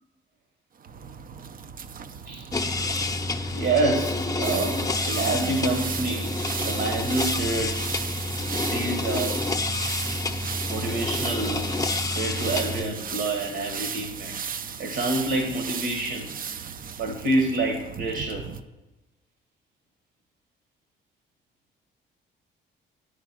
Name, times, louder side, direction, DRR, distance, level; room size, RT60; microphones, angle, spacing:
sound 1, 0.8-18.6, right 7 dB, 45° right, 0.5 m, -36 dB
sound 2, 2.5-12.8, left 2 dB, 20° left, 0.7 m, -29 dB
voice 1, 3.5-8.0 8.4-9.4 10.6-11.6 12.1-16.3 17.0-18.5, right 2 dB, 65° right, 2 dB, 1.4 m, -28 dB
8.6 x 4.9 x 5.9 m, 1.1 s
cardioid pair, 90°, 20 cm